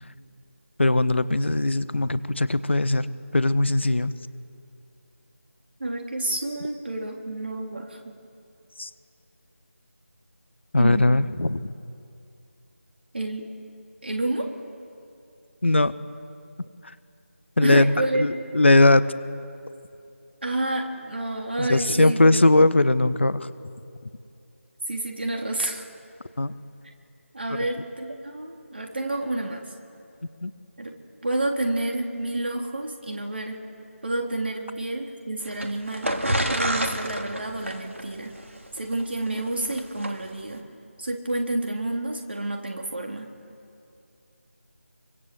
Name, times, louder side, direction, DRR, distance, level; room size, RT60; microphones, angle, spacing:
voice 1, 0.8-3.1 3.3-4.1 8.8-8.9 10.7-11.7 15.6-15.9 16.8-16.9 17.6-19.0 21.6-23.5 26.4-26.5 30.4-30.5, left 2 dB, 55° left, 15 dB, 1.2 m, -20 dB
voice 2, 5.8-8.1 10.8-11.2 13.1-13.5 14.0-14.5 17.6-18.2 20.4-22.4 24.9-25.8 27.3-29.6 30.8-30.9 31.2-33.6 34.0-36.1 36.5-38.4 38.7-40.7 41.0-43.3, right 2 dB, 50° right, 1 dB, 3.8 m, -29 dB
sound 1, 35.4-40.1, right 1 dB, 65° right, 2.7 m, -29 dB
26.5 x 24.0 x 7.9 m, 2.6 s
figure-of-eight pair, 165°, 7 cm